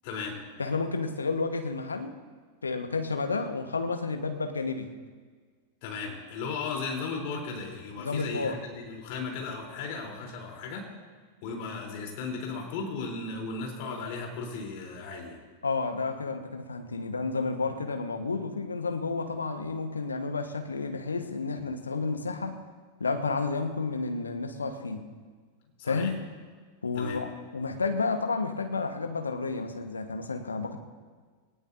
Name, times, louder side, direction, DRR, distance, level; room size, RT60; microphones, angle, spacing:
voice 1, 0.0-0.4 5.8-10.9 11.4-15.4 25.8-26.1 27.0-27.3, left 4 dB, 45° left, 0 dB, 3.9 m, -36 dB
voice 2, 0.6-2.1 2.6-4.9 8.0-8.6 15.6-22.6 23.0-25.1 25.8-26.2 26.8-30.8, left 4 dB, 75° left, 7 dB, 1.4 m, -31 dB
20.5 x 19.0 x 2.8 m, 1.5 s
figure-of-eight pair, 90°, 0 cm